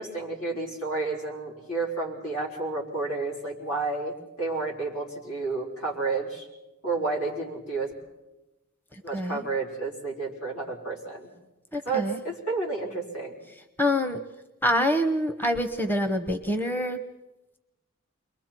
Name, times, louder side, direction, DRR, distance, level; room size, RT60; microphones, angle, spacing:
voice 1, 0.0-6.4 6.8-7.9 9.0-11.3 11.8-13.3, right 3 dB, 85° left, -2 dB, 4.7 m, -31 dB
voice 2, 8.9-9.4 11.7-12.2 13.8-14.2 14.6-17.0, left 1 dB, 10° left, 8 dB, 0.8 m, -26 dB
29.0 x 22.5 x 4.5 m, 1.0 s
head